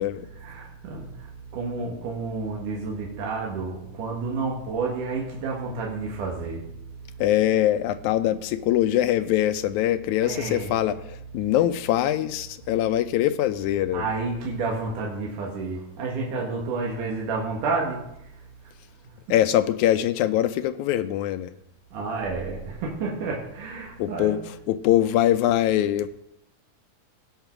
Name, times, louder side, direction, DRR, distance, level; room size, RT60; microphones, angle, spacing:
voice 1, 0.4-6.7 10.2-10.8 13.9-18.0 21.9-24.4, right 4 dB, 80° right, -2 dB, 3.2 m, -30 dB
voice 2, 7.2-14.1 19.3-21.5 24.0-24.4 24.7-26.1, left 12 dB, 80° left, 11 dB, 1.8 m, -23 dB
17.0 x 5.8 x 5.9 m, 0.79 s
omnidirectional pair, 3.7 m